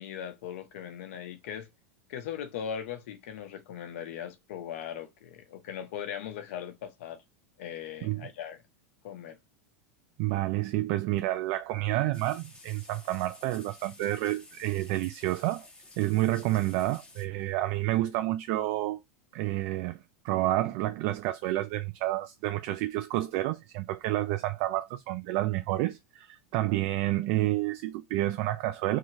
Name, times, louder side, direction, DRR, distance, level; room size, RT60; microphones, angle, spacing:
voice 1, 0.0-1.7 2.1-7.2 7.6-8.6 9.0-9.4, left 9 dB, 70° left, 0.8 m, -39 dB
voice 2, 10.2-15.7 16.0-19.0 19.3-29.0, right 16 dB, 55° right, 0.4 m, -29 dB
sound 1, 12.1-17.2, left 2 dB, 15° left, 1.5 m, -52 dB
2.8 x 2.8 x 2.6 m
hypercardioid pair, 115°, 8 cm